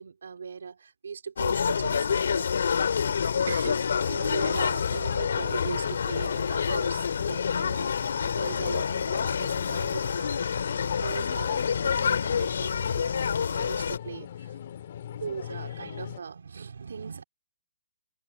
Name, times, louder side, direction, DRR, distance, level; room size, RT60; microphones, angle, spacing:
voice 1, 0.0-2.5 3.5-10.4 10.7-14.6 15.1-17.2, right 6 dB, 80° right, 3.7 m, -39 dB
sound 1, 1.4-14.0, left 6 dB, 70° left, 3.4 m, -27 dB
Tokyo - Subway platform and train., 2.9-16.2, left 10 dB, 50° left, 2.3 m, -39 dB
hypercardioid pair, 160°, 0 cm